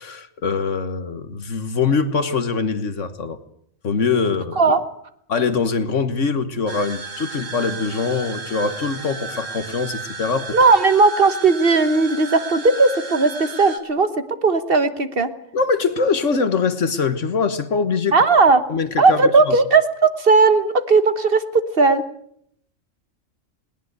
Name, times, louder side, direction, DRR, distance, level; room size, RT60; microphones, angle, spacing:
voice 1, 0.0-3.4 3.8-4.6 5.3-10.6 15.5-18.1 18.7-19.6, left 5 dB, 65° left, 11 dB, 1.7 m, -23 dB
sound 1, 6.7-13.8, right 4 dB, 70° right, 2.5 m, -34 dB
voice 2, 10.5-14.1 14.4-15.3 18.1-18.6 19.0-22.0, right 4 dB, 45° right, 11 dB, 1.4 m, -16 dB
20.5 x 19.0 x 8.1 m, 0.71 s
omnidirectional pair, 1.3 m